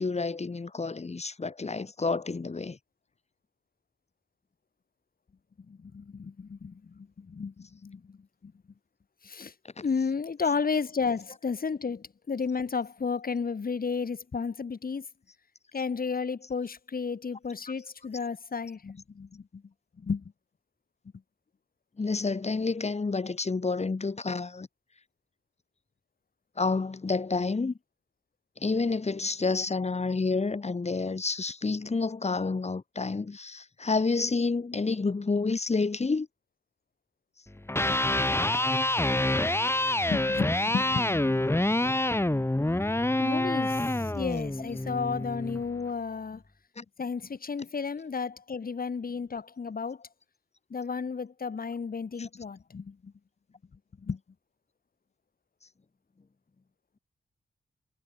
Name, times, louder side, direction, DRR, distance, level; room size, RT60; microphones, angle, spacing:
voice 1, 0.0-2.8 22.0-24.7 26.6-27.7 28.6-36.3 46.8-46.9 52.2-52.3, left 4 dB, 35° left, 4.1 m, -29 dB
voice 2, 5.7-8.5 9.2-9.5 9.8-15.1 15.7-19.6 20.0-20.3 40.1-42.3 43.2-46.4 47.0-50.1 50.7-53.1 54.0-54.2, left 5 dB, 50° left, 4.6 m, -33 dB
Electric guitar, 37.6-45.7, left 1 dB, 15° left, 4.1 m, -27 dB
wide cardioid pair, 100°, 19 cm